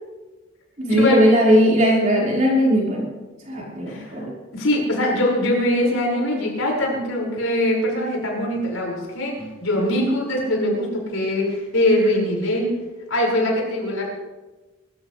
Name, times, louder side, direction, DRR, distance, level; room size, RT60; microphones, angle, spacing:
voice 1, 0.8-3.1 3.4-4.4 9.4-9.5, equal, 35° right, -4 dB, 5.1 m, -18 dB
voice 2, 3.9-4.3 4.5-9.3 9.6-12.7 13.1-14.1, left 1 dB, 85° left, -2 dB, 6.1 m, -22 dB
24.5 x 14.5 x 3.4 m, 1.2 s
head